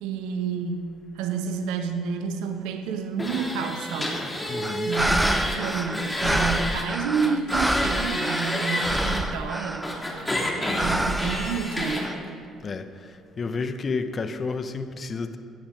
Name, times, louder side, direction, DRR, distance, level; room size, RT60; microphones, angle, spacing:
voice 1, 0.0-4.5 4.8-10.3 10.8-12.1, right 6 dB, 75° right, 6 dB, 1.1 m, -30 dB
sound 1, 3.2-6.8 7.1-9.2 9.8-12.1, left 1 dB, 15° left, 3.2 m, -29 dB
voice 2, 4.5-4.9 12.6-12.9 13.4-15.4, left 4 dB, 40° left, 9 dB, 1.0 m, -30 dB
sound 2, 4.6-10.2 10.7-12.1, right 1 dB, 10° right, 0.5 m, -28 dB
17.0 x 10.0 x 5.0 m, 2.3 s
hypercardioid pair, 50°, 0 cm